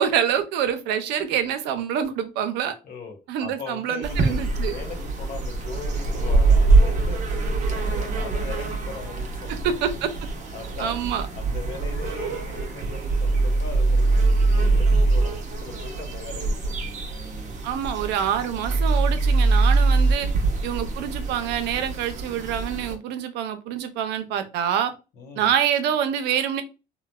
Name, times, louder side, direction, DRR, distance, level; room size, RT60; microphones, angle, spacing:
voice 1, 0.0-2.7 3.3-4.7 9.6-10.1 10.8-11.3 17.6-20.3 20.6-24.9 25.4-26.6, right 9 dB, 90° right, 9 dB, 0.5 m, -26 dB
voice 2, 2.8-4.3 4.6-9.6 10.5-11.1 11.3-17.6 20.4-20.7 25.2-25.5, left 4 dB, 60° left, 2 dB, 1.0 m, -39 dB
sound 1, 4.0-22.9, right 3 dB, 45° right, 0.7 m, -26 dB
sound 2, 13.1-15.3 18.6-20.1, right 3 dB, 10° left, 0.9 m, -19 dB
3.1 x 2.0 x 2.2 m, 0.29 s
cardioid pair, 110°, 17 cm